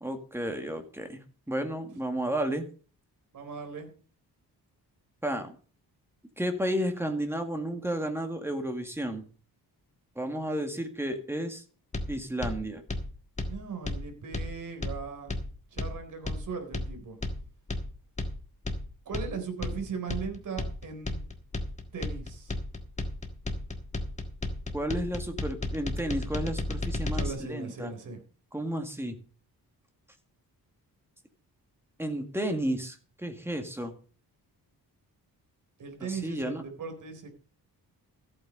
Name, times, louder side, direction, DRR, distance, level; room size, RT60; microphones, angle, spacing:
voice 1, 0.0-2.7 5.2-5.5 6.4-9.2 10.2-11.6 12.1-12.8 24.7-27.9 28.5-29.2 32.0-33.9 36.0-36.6, right 1 dB, 5° right, 5 dB, 2.0 m, -32 dB
voice 2, 3.3-3.9 13.5-15.4 15.7-17.2 19.1-21.2 21.9-22.5 27.1-28.2 35.8-37.3, right 5 dB, 55° right, 6 dB, 4.0 m, -38 dB
sound 1, 11.9-27.3, left 2 dB, 20° left, 1.5 m, -34 dB
14.5 x 8.7 x 5.3 m, 0.39 s
wide cardioid pair, 160°, 37 cm